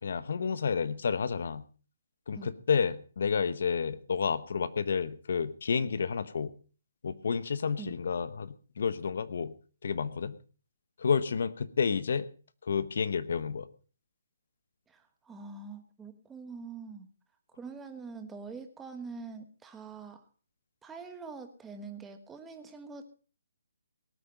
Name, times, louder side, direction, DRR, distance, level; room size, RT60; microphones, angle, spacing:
voice 1, 0.0-1.6 2.3-6.5 7.0-9.5 9.8-10.4 11.0-12.3 12.6-13.7, left 6 dB, 60° left, 16 dB, 1.1 m, -30 dB
voice 2, 14.9-17.1 17.5-20.2 20.8-23.0, right 4 dB, 5° right, 6 dB, 1.2 m, -44 dB
18.5 x 9.0 x 5.3 m, 0.38 s
hypercardioid pair, 165°, 0 cm